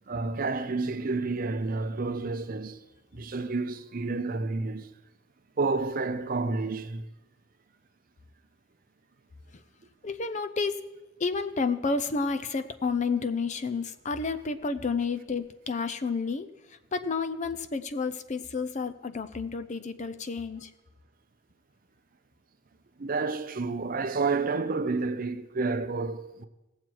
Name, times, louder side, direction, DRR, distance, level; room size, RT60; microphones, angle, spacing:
voice 1, 0.1-2.8 3.1-4.9 5.6-7.0 23.0-26.5, right 3 dB, 45° right, 0.6 m, -30 dB
voice 2, 10.0-10.8 11.2-20.7, left 4 dB, 35° left, 0.5 m, -30 dB
18.0 x 7.5 x 4.6 m
head